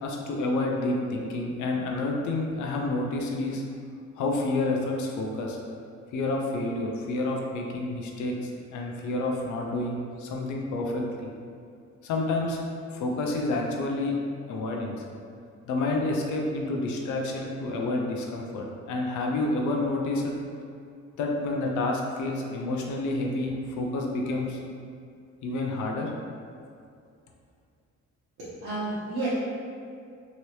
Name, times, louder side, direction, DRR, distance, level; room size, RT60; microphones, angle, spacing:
voice 1, 0.0-3.6 4.2-5.6 6.1-11.3 12.0-12.6 12.9-14.2 14.5-14.9 15.7-20.4 21.2-24.6 25.4-26.1, left 2 dB, 75° left, 0 dB, 0.5 m, -29 dB
voice 2, 28.4-29.3, right 2 dB, 80° right, -11 dB, 1.0 m, -31 dB
2.9 x 2.8 x 3.0 m, 2.4 s
cardioid pair, 90°, 30 cm